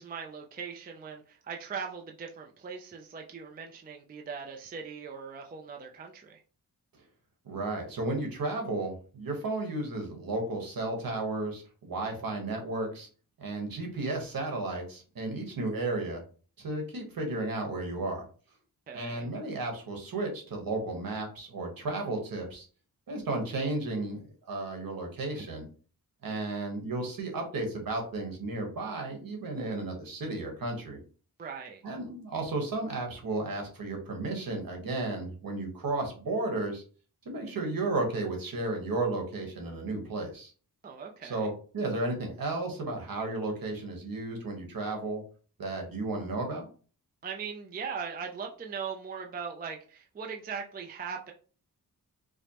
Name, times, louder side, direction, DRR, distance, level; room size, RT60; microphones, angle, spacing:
voice 1, 0.0-6.4 18.9-19.3 25.4-25.5 31.4-31.8 40.8-41.5 47.2-51.3, right 6 dB, 25° right, 2 dB, 0.4 m, -40 dB
voice 2, 7.4-13.1 13.4-16.2 16.6-18.3 18.9-22.7 23.1-24.2 24.5-25.7 26.2-31.0 31.8-36.8 37.2-40.5 41.2-45.2 45.6-46.6, right 2 dB, 65° right, 2 dB, 1.1 m, -33 dB
4.9 x 2.1 x 2.9 m, 0.40 s
wide cardioid pair, 155°, 37 cm